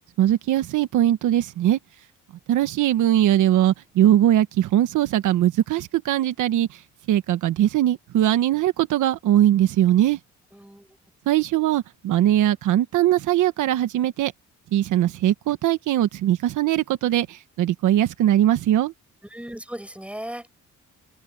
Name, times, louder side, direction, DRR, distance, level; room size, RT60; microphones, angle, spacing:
voice 1, 0.2-1.8 2.5-6.8 7.1-10.2 11.3-14.3 14.7-18.9, right 12 dB, 80° right, 1.3 m, -20 dB
voice 2, 10.5-11.0 19.3-20.5, right 1 dB, 5° right, 7.9 m, -37 dB
open air
cardioid pair, 90°, 30 cm